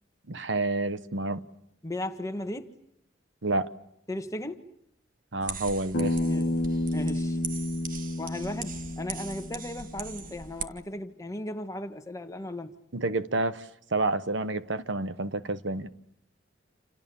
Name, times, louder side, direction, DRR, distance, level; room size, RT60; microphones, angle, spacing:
voice 1, 0.3-1.4 3.4-3.7 5.3-6.2 12.9-15.9, right 2 dB, 70° right, 1.1 m, -29 dB
voice 2, 1.8-2.7 4.1-4.7 6.2-6.6 6.9-7.4 8.2-12.7, left 1 dB, 15° left, 1.6 m, -36 dB
sound 1, 5.4-10.6, right 6 dB, 45° right, 1.6 m, -40 dB
Bass guitar, 5.9-10.2, left 1 dB, 55° left, 1.5 m, -30 dB
28.5 x 28.0 x 7.2 m
head